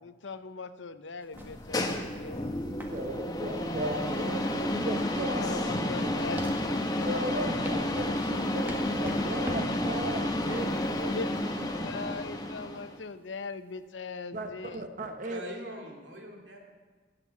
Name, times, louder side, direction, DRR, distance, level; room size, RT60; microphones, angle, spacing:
voice 1, 0.0-2.5 5.1-7.8 11.0-11.4 11.7-14.8, left 4 dB, 85° left, 12 dB, 0.7 m, -40 dB
sound 1, 1.2-13.9, equal, 10° right, 1.5 m, -44 dB
sound 2, 1.3-13.0, left 1 dB, 20° left, 1.2 m, -31 dB
voice 2, 2.9-5.8 6.0-6.1 7.0-10.7 11.0-11.7 14.3-15.4, right 1 dB, 45° right, 6 dB, 1.1 m, -37 dB
voice 3, 10.4-11.0 15.3-16.6, equal, 80° right, 1 dB, 2.7 m, -42 dB
17.0 x 6.8 x 8.2 m, 1.4 s
head